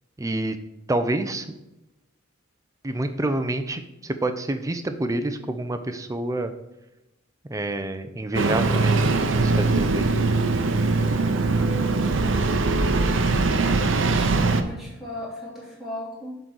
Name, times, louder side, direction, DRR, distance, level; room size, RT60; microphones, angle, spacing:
voice 1, 0.2-0.6 0.9-1.6 2.8-6.5 7.5-10.1, right 1 dB, 15° right, 9 dB, 0.5 m, -28 dB
Engine starting, 8.3-14.6, right 3 dB, 65° right, 0.7 m, -21 dB
voice 2, 11.4-11.8 13.9-16.4, left 1 dB, ahead, -7 dB, 2.7 m, -38 dB
8.0 x 4.0 x 6.2 m, 0.94 s
head